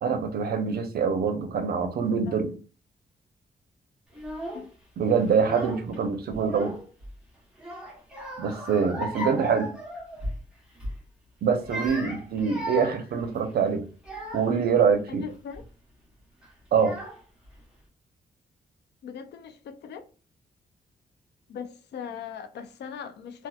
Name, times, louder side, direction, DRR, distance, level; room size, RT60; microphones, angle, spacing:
voice 1, 0.0-2.5 5.0-6.7 8.4-9.7 11.4-13.8 14.3-15.2 16.7-16.9, right 6 dB, 65° right, 0.5 m, -25 dB
Child speech kid speaking / Crying sobbing, 4.1-4.7 5.3-6.0 6.3-7.1 7.6-10.4 10.7-11.0 11.5-14.6 15.3-15.6 16.4-16.5 16.8-17.5, equal, 5° right, 0.8 m, -37 dB
voice 2, 15.1-15.6 19.0-20.1 21.5-23.5, left 7 dB, 90° left, 0.4 m, -40 dB
2.7 x 2.2 x 2.2 m
wide cardioid pair, 150°, 17 cm